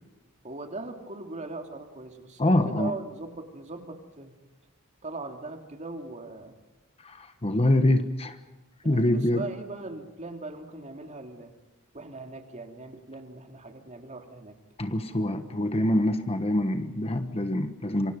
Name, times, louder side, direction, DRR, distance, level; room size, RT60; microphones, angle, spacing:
voice 1, 0.4-4.3 5.0-6.5 8.9-11.5 11.9-14.6, right 2 dB, 35° right, 4 dB, 2.9 m, -40 dB
voice 2, 2.4-2.9 7.0-8.4 8.8-9.4 14.8-18.1, left 1 dB, 30° left, 9 dB, 1.2 m, -25 dB
27.5 x 24.5 x 5.4 m, 1.1 s
head